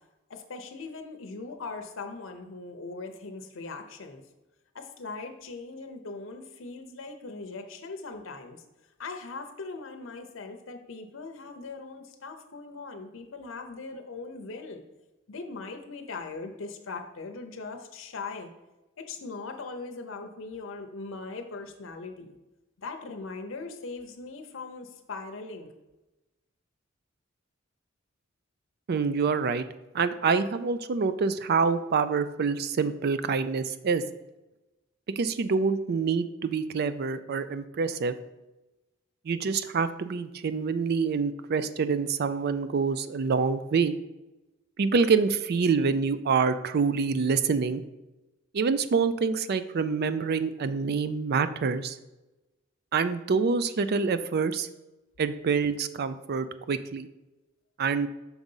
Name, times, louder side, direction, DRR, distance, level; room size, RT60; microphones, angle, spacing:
voice 1, 0.3-4.2 4.7-8.6 9.0-14.8 15.3-18.5 19.0-22.3 22.8-25.7, left 3 dB, 70° left, 5 dB, 0.7 m, -40 dB
voice 2, 28.9-29.6 29.9-34.0 35.2-38.1 39.3-43.9 44.8-47.8 48.5-52.0 52.9-54.7 55.2-57.1 57.8-58.1, right 5 dB, 55° right, 12 dB, 0.4 m, -26 dB
6.0 x 3.9 x 5.4 m, 1.0 s
head